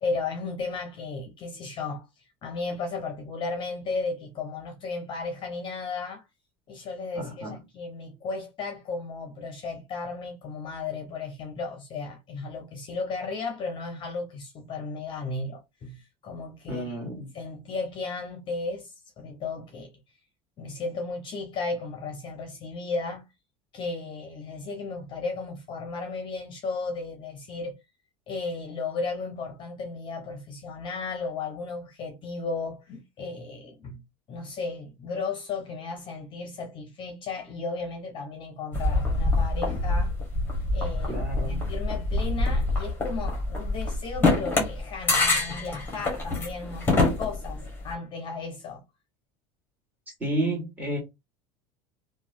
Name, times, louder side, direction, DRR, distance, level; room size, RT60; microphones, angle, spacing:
voice 1, 0.0-6.2 6.7-17.0 17.3-19.9 20.6-23.2 23.7-27.8 28.3-40.1 40.7-48.8, left 4 dB, 35° left, 0.7 m, -35 dB
voice 2, 7.2-7.6 16.7-17.3 41.1-41.6 50.2-51.0, right 1 dB, 10° right, 1.7 m, -31 dB
sound 1, 38.7-47.9, left 2 dB, 15° left, 1.1 m, -26 dB
3.0 x 2.2 x 2.5 m
supercardioid pair, 125°, 14 cm